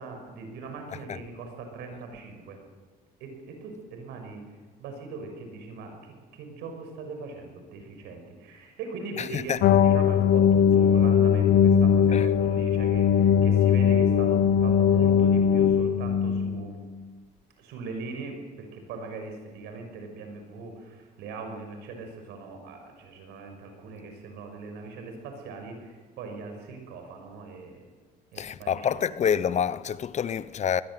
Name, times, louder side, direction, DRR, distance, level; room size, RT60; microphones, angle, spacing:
voice 1, 0.0-2.6 3.2-4.4 4.8-16.8 17.6-27.8 28.3-29.2, right 4 dB, 90° right, 6.0 m, -40 dB
sound 1, 9.6-16.7, left 8 dB, 70° left, 1.1 m, -20 dB
voice 2, 28.4-30.8, left 8 dB, 45° left, 1.0 m, -27 dB
21.5 x 21.5 x 7.9 m
cardioid pair, 110°, 17 cm